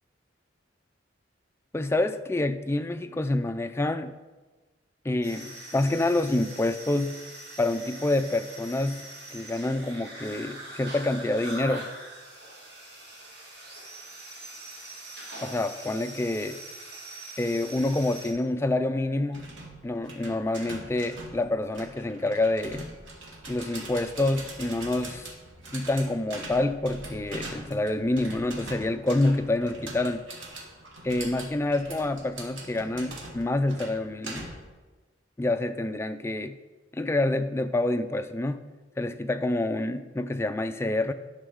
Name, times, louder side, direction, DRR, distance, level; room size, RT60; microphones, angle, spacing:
voice 1, 1.7-4.2 5.0-7.2 7.6-9.0 9.3-11.9 15.4-16.6 17.4-19.5 19.8-22.9 23.5-25.3 25.7-30.2 31.0-34.5 35.4-36.6 36.9-38.6 39.0-41.1, left 2 dB, 15° left, 8 dB, 0.3 m, -27 dB
sound 1, 5.2-18.3, right 2 dB, 55° right, 1.9 m, -43 dB
sound 2, 19.3-34.8, right 2 dB, 80° right, 1.3 m, -42 dB
9.8 x 6.1 x 3.7 m, 1.2 s
head